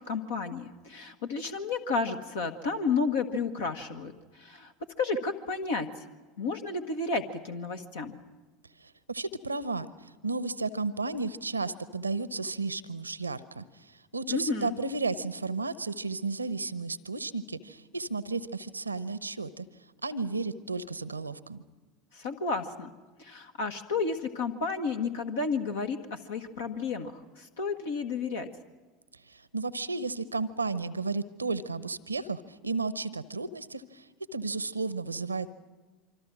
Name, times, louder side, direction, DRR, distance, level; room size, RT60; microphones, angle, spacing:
voice 1, 0.0-4.1 4.4-4.7 5.0-5.9 6.4-8.2 14.3-14.7 22.1-22.9 23.2-28.5, left 4 dB, 70° left, 5 dB, 1.5 m, -32 dB
voice 2, 8.8-19.7 20.0-21.6 29.3-34.1 34.3-35.5, right 3 dB, 85° right, 16 dB, 0.9 m, -33 dB
26.5 x 25.0 x 6.2 m, 1.3 s
figure-of-eight pair, 75°, 0 cm